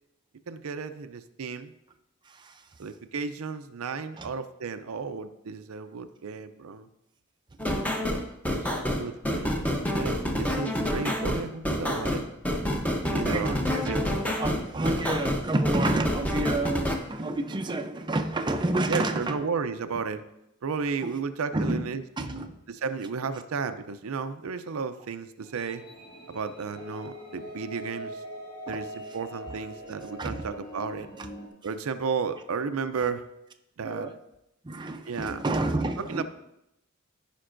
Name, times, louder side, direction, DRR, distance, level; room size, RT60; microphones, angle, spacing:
voice 1, 0.5-1.7 2.8-6.9 8.5-9.6 9.9-12.2 13.1-13.6 13.9-14.0 18.9-20.2 20.6-22.0 22.7-25.8 26.3-28.2 28.7-31.1 31.6-33.3 33.8-34.1 35.1-35.4 36.0-36.2, right 5 dB, 80° right, 9 dB, 0.5 m, -33 dB
voice 2, 2.2-2.7 4.2-4.3 13.3-13.9 14.4-19.5 21.0-21.1 21.5-21.8 22.2-22.6 28.7-28.8 29.5-29.6 30.2-30.5 31.2-31.3 33.0-33.1 33.8-34.2 34.6-36.2, right 2 dB, 20° right, 5 dB, 0.5 m, -29 dB
sound 1, 7.6-17.0, equal, 5° left, 0.8 m, -28 dB
sound 2, 25.4-31.5, equal, 40° left, 1.9 m, -42 dB
14.5 x 5.2 x 2.5 m, 0.86 s
head